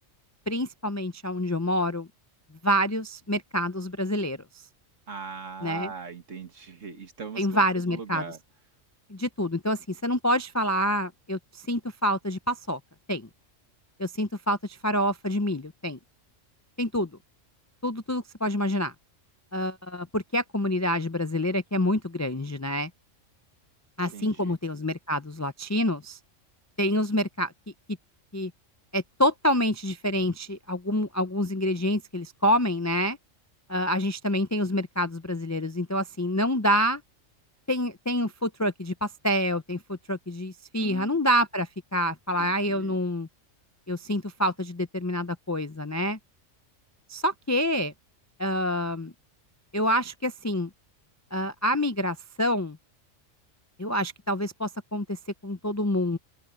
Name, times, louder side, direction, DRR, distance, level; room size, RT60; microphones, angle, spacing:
voice 1, 0.5-2.1 2.6-4.4 5.6-5.9 7.4-8.2 9.1-12.8 13.1-13.3 14.0-16.0 16.8-17.1 17.8-18.9 19.5-22.9 24.0-26.2 26.8-27.5 28.3-28.5 28.9-33.2 33.7-37.0 37.7-43.3 43.9-46.2 47.1-47.9 48.4-49.1 49.7-50.7 51.3-52.8 53.8-56.2, equal, 30° left, 0.3 m, -27 dB
voice 2, 5.1-8.4 24.1-24.6 40.8-41.2 42.4-43.0, right 5 dB, 70° right, 2.3 m, -40 dB
open air
omnidirectional pair, 1.3 m